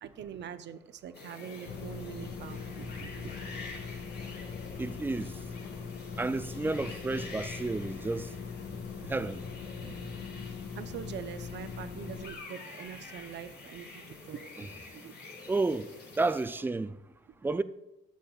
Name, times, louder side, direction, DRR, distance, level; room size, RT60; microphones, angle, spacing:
voice 1, 0.0-3.3 9.0-9.1 10.5-15.1, right 8 dB, 65° right, 0.6 m, -44 dB
sound 1, 1.1-16.4, left 3 dB, 55° left, 1.9 m, -47 dB
sound 2, 1.7-12.3, left 5 dB, 90° left, 0.9 m, -41 dB
voice 2, 4.8-5.4 6.2-8.3 9.1-9.4 9.8-10.0 14.6-14.7 15.5-15.9 16.2-17.0 17.4-17.6, right 3 dB, 10° right, 0.3 m, -31 dB
12.5 x 7.5 x 2.3 m
cardioid pair, 90°, 20 cm